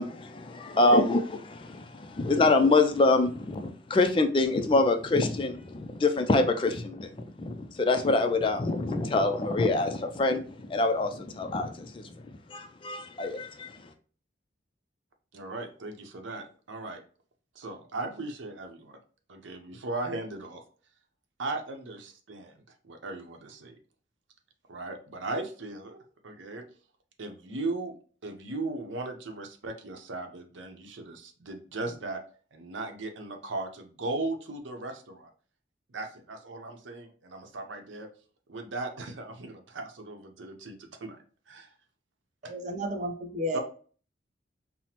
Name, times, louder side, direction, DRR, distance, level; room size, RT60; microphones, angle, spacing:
voice 1, 0.0-12.1 12.5-13.8, left 2 dB, 25° left, 6 dB, 0.3 m, -25 dB
voice 2, 15.3-17.0 17.5-19.0 19.3-20.6 21.4-23.7 24.7-26.6 27.2-27.9 28.2-32.2 32.5-35.3 35.9-38.1 38.5-41.2 41.5-41.7 42.4-42.5 43.5-43.6, right 2 dB, 90° right, 5 dB, 0.7 m, -37 dB
voice 3, 42.4-43.6, equal, 40° right, 6 dB, 0.5 m, -32 dB
5.8 x 2.0 x 2.8 m, 0.42 s
head